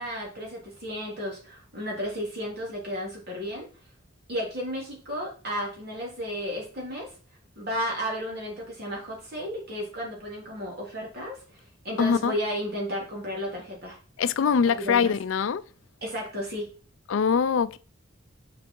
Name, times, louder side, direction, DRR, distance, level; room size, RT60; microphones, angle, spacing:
voice 1, 0.0-3.7 4.3-7.1 7.6-14.0 14.7-15.1 16.0-16.7, equal, 45° right, 3.1 m, -33 dB
voice 2, 12.0-12.3 14.2-15.6 17.1-17.8, left 6 dB, 65° left, 0.4 m, -23 dB
6.9 x 5.3 x 4.6 m
head